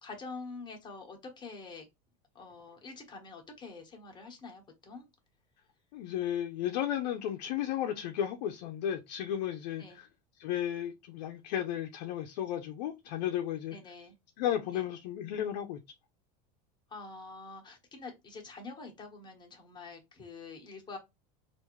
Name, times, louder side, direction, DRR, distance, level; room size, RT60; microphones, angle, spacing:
voice 1, 0.0-1.9 2.3-5.1 9.8-10.0 13.7-14.1 14.7-14.8 16.9-21.0, left 3 dB, 20° left, 1.1 m, -46 dB
voice 2, 5.9-10.1 10.4-13.7 14.4-15.8, left 10 dB, 75° left, 0.6 m, -34 dB
3.4 x 2.5 x 3.1 m
supercardioid pair, 125°, 21 cm